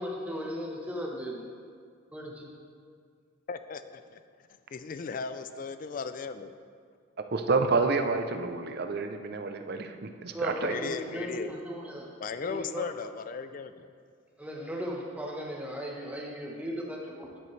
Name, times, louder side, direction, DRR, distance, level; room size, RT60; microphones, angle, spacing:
voice 1, 0.0-1.4 2.1-2.5 10.3-12.1 12.4-12.9 14.4-17.4, equal, 5° right, -2 dB, 1.0 m, -37 dB
voice 2, 3.5-4.2 4.7-6.5 10.6-11.5 12.2-13.9, left 5 dB, 40° left, 11 dB, 0.3 m, -36 dB
voice 3, 7.3-10.7, right 4 dB, 50° right, 7 dB, 0.5 m, -29 dB
10.0 x 9.0 x 3.2 m, 2.1 s
head